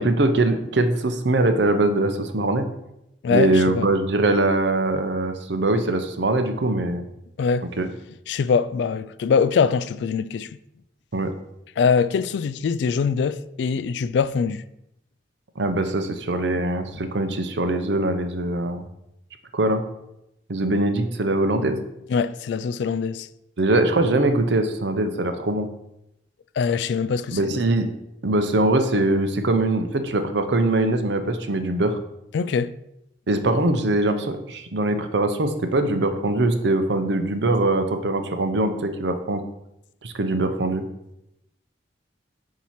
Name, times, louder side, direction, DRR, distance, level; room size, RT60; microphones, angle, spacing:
voice 1, 0.0-2.7 3.3-7.0 7.8-7.9 11.1-11.3 15.6-18.8 19.5-19.8 20.5-21.8 23.6-25.7 27.3-27.9 28.2-32.0 33.3-39.4 40.0-40.8, right 2 dB, 70° right, 0.7 m, -22 dB
voice 2, 3.2-3.9 7.4-7.7 8.3-10.5 11.8-14.6 22.1-23.3 26.6-27.6 32.3-32.7, left 5 dB, 70° left, 0.3 m, -23 dB
7.2 x 2.9 x 5.7 m
head